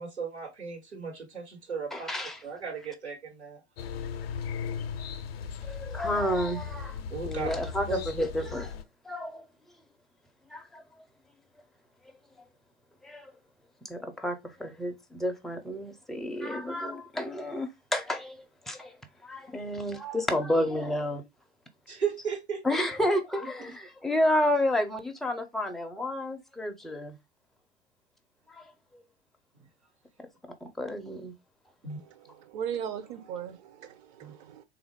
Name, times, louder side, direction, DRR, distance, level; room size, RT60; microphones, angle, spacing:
voice 1, 0.0-2.1 2.4-3.6 7.1-7.5 7.9-8.0 21.9-22.6 31.8-32.0, right 6 dB, 90° right, 1.3 m, -35 dB
voice 2, 1.9-2.4 5.6-7.0 7.2-8.7 9.0-9.4 10.5-10.8 13.0-13.3 13.8-21.2 22.6-27.1 28.5-28.7 28.9-29.0 30.6-31.3 34.2-34.3, left 1 dB, ahead, 0.4 m, -31 dB
sound 1, 3.8-8.8, left 6 dB, 65° left, 0.5 m, -37 dB
voice 3, 31.9-34.6, right 8 dB, 45° right, 0.5 m, -38 dB
3.5 x 2.4 x 3.3 m
figure-of-eight pair, 85°, 32 cm